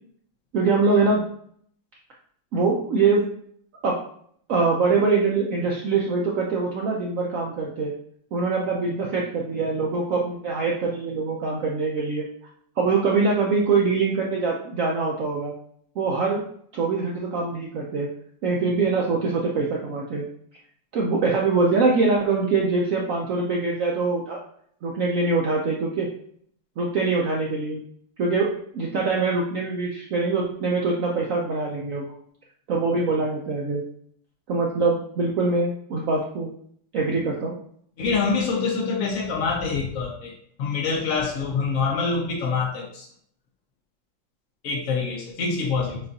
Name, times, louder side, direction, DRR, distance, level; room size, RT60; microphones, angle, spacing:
voice 1, 0.5-1.2 2.5-3.3 3.8-4.0 4.5-7.9 8.3-12.2 12.8-15.5 16.0-16.4 16.7-18.1 18.4-20.3 20.9-24.4 24.8-26.1 26.8-27.8 28.2-28.5 28.7-32.0 32.7-33.8 34.5-36.5 36.9-37.6, right 4 dB, 85° right, -2 dB, 0.7 m, -23 dB
voice 2, 38.0-40.3 40.6-43.1 44.6-46.0, left 4 dB, 80° left, 0 dB, 0.7 m, -25 dB
6.5 x 2.4 x 2.6 m, 0.64 s
omnidirectional pair, 2.0 m